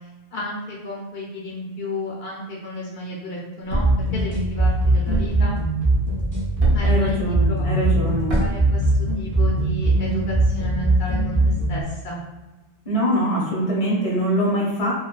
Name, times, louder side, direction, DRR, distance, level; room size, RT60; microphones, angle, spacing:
voice 1, 0.3-3.8 4.1-5.6 6.7-7.7 8.4-12.2, left 1 dB, 70° left, -3 dB, 0.8 m, -32 dB
Thump thud, 3.7-4.1 5.1-5.5 6.6-7.0 8.3-8.7, right 1 dB, 65° right, 0.7 m, -24 dB
sound 1, 3.8-11.8, right 1 dB, 25° right, 0.4 m, -21 dB
voice 2, 6.8-8.4 12.8-15.0, right 1 dB, 40° left, -5 dB, 0.7 m, -23 dB
2.5 x 2.3 x 2.2 m, 1.1 s
omnidirectional pair, 1.1 m